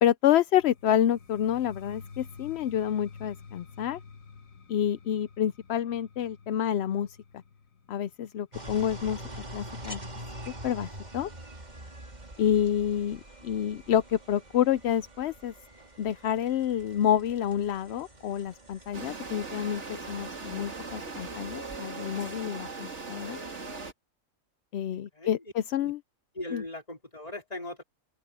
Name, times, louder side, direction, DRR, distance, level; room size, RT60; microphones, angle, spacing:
voice 1, 0.0-4.0 4.7-7.2 7.9-9.2 9.5-10.0 10.6-11.3 12.4-15.5 16.0-23.4 24.7-26.0 26.5-26.6, left 10 dB, 65° left, 0.7 m, -28 dB
sound 1, 0.6-10.4, left 5 dB, 80° left, 1.8 m, -50 dB
sound 2, 8.5-21.8, right 1 dB, 30° right, 3.2 m, -45 dB
sound 3, 18.9-23.9, right 4 dB, 60° right, 2.5 m, -39 dB
voice 2, 24.9-25.4 25.8-25.9 26.3-27.8, left 2 dB, 30° left, 4.5 m, -39 dB
open air
omnidirectional pair, 1.4 m